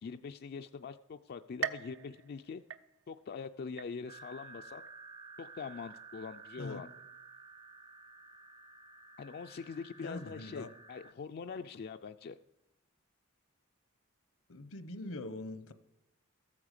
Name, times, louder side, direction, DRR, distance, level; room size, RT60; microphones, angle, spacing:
voice 1, 0.0-2.6 3.1-4.8 5.4-6.9 9.2-12.4, left 5 dB, 50° left, 0.4 m, -43 dB
sound 1, 1.6-3.3 3.8-4.4 4.9-5.0 5.9-6.0, right 8 dB, 70° right, 0.7 m, -41 dB
sound 2, 4.1-11.1, right 4 dB, 25° right, 0.6 m, -53 dB
voice 2, 10.0-10.7 14.5-15.7, left 2 dB, 80° left, 0.9 m, -42 dB
14.0 x 8.7 x 6.5 m
head